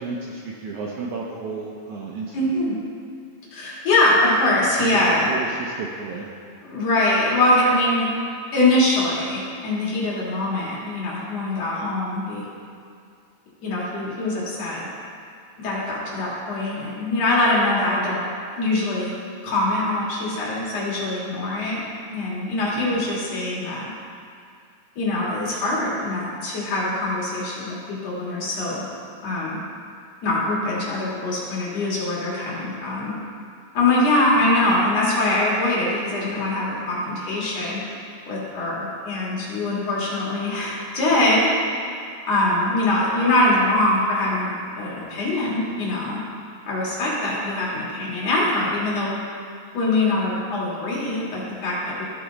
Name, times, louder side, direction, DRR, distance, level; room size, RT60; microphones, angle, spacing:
voice 1, 0.0-2.4 4.8-6.3 22.7-23.0 34.4-34.5, right 4 dB, 85° right, -3 dB, 1.7 m, -32 dB
voice 2, 2.3-2.8 3.5-5.3 6.6-8.1 8.5-12.4 13.6-14.9 15.6-18.2 18.6-19.1 19.4-23.9 25.0-28.8 29.2-29.6 30.2-33.2 33.7-37.8 38.3-41.5 42.3-46.2 46.7-49.2 49.7-52.0, left 2 dB, 50° left, -6 dB, 2.7 m, -23 dB
14.5 x 4.9 x 4.0 m, 2.3 s
omnidirectional pair, 4.3 m